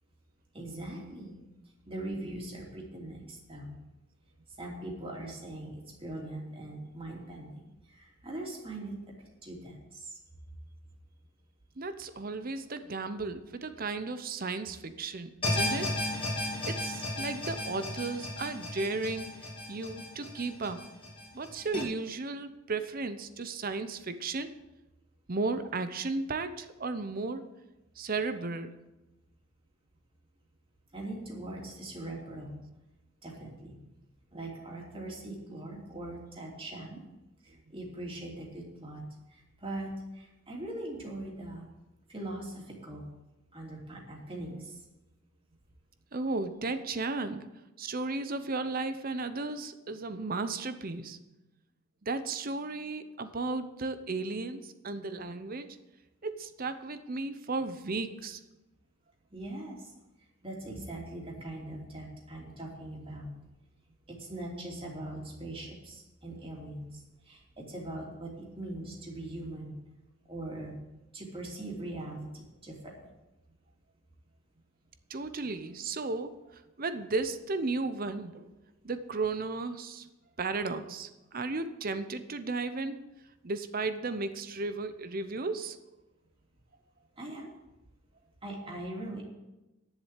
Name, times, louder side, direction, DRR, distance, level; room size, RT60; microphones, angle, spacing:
voice 1, 0.5-1.4 1.8-3.8 4.6-7.5 7.9-9.0 9.4-10.2 30.9-32.6 33.2-33.8 34.3-37.0 37.4-41.6 42.1-43.1 43.5-44.8 59.3-59.9 60.4-63.3 64.1-69.8 70.3-70.8 71.1-73.0 87.2-87.5 88.4-89.2, right 1 dB, 25° right, -2 dB, 2.9 m, -41 dB
voice 2, 11.8-15.9 16.7-19.3 19.7-20.8 21.3-24.5 25.3-27.4 28.0-28.7 46.1-47.5 47.8-51.2 52.0-55.7 56.2-58.4 75.1-76.3 76.8-78.5 78.8-80.0 80.4-83.0 83.4-85.8, right 3 dB, 40° right, 11 dB, 0.7 m, -34 dB
sound 1, 15.4-21.8, left 1 dB, 25° left, 2.4 m, -34 dB
11.0 x 7.4 x 8.2 m, 1.0 s
head